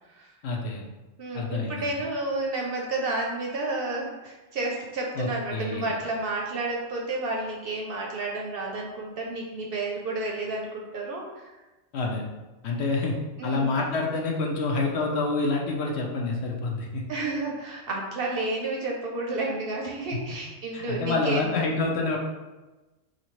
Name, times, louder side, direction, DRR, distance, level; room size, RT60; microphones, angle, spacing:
voice 1, 0.4-0.8 1.3-1.8 5.1-5.9 11.9-12.2 12.6-13.2 13.4-17.0 20.3-20.4 20.7-22.2, left 3 dB, 65° left, 0 dB, 0.8 m, -27 dB
voice 2, 1.2-11.5 13.4-13.8 17.1-21.4, right 2 dB, 60° right, -1 dB, 0.6 m, -31 dB
4.1 x 2.6 x 3.0 m, 1.1 s
omnidirectional pair, 1.3 m